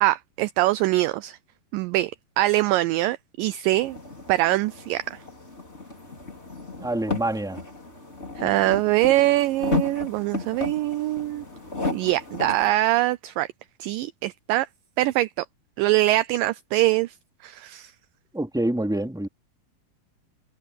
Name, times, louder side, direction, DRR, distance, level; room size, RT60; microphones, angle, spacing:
voice 1, 0.0-1.4 1.7-4.0 4.3-5.2 8.4-11.5 11.9-13.5 13.8-14.7 15.0-15.3 15.8-17.1 17.4-17.9, right 17 dB, 80° right, 2.0 m, -23 dB
sound 1, 3.7-12.7, left 3 dB, 15° left, 5.0 m, -34 dB
voice 2, 6.8-7.6 18.3-19.3, right 1 dB, ahead, 3.2 m, -26 dB
omnidirectional pair, 4.3 m